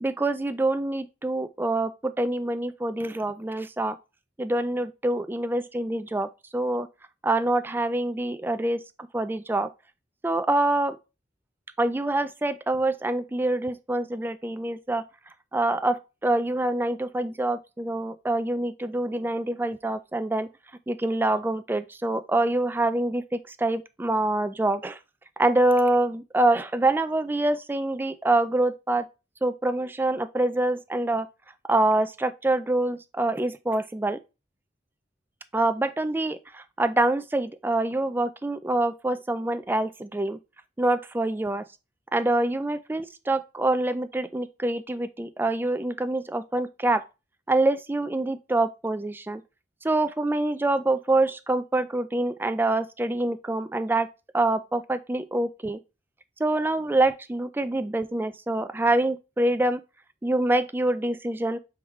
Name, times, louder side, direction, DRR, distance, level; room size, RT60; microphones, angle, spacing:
voice 1, 0.0-4.0 4.4-6.9 7.2-9.7 10.2-11.0 11.8-15.0 15.5-20.5 20.9-25.0 25.4-29.1 29.4-31.3 31.7-34.2 35.5-40.4 40.8-41.6 42.1-47.0 47.5-49.4 49.8-54.1 54.3-55.8 56.4-59.8 60.2-61.6, right 2 dB, 10° right, 0.3 m, -25 dB
4.6 x 3.6 x 3.0 m
head